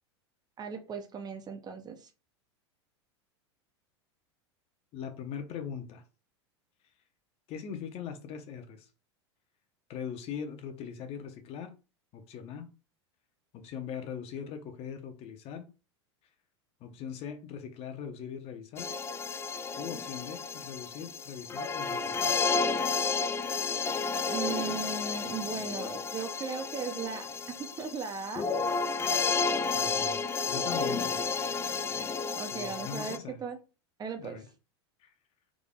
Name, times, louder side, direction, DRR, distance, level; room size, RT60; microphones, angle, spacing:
voice 1, 0.6-2.1 24.3-27.3 27.6-28.5 32.3-33.6 34.0-34.4, right 6 dB, 30° right, 0.7 m, -37 dB
voice 2, 4.9-6.0 7.5-8.9 9.9-11.7 12.1-12.7 13.5-15.7 16.8-18.9 19.8-22.3 29.7-30.2 30.5-31.2 32.5-33.4 34.2-34.5 35.0-35.1, left 7 dB, 45° left, 0.9 m, -40 dB
sound 1, 18.8-33.2, left 4 dB, 15° left, 0.3 m, -31 dB
3.7 x 3.4 x 2.4 m
hypercardioid pair, 90°, 14 cm